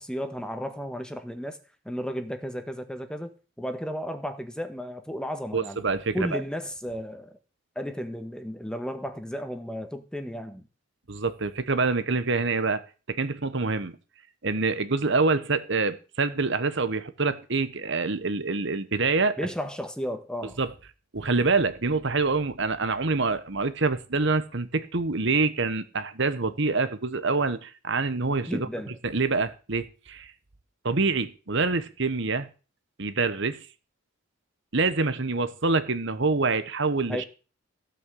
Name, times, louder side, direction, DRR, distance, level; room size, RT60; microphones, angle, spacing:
voice 1, 0.0-1.6 1.8-5.8 6.1-7.4 7.7-10.6 19.4-20.6 28.5-29.0 37.1-37.3, equal, 5° left, 1.5 m, -33 dB
voice 2, 5.5-6.4 11.1-12.8 13.1-13.9 14.4-19.4 20.6-20.7 21.1-28.7 29.0-30.3 30.8-32.5 33.0-33.7 34.7-37.2, right 3 dB, 60° right, 1.2 m, -26 dB
16.5 x 5.9 x 8.5 m
head